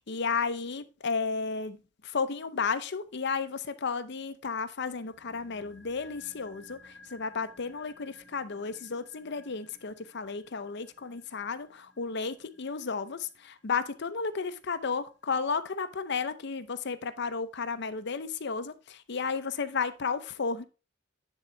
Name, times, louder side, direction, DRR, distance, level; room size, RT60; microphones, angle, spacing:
voice 1, 0.0-1.8 2.0-20.7, left 5 dB, 60° left, 0.7 m, -33 dB
sound 1, 4.9-15.2 15.4-15.5, left 2 dB, 5° left, 2.8 m, -57 dB
10.0 x 3.9 x 4.5 m
head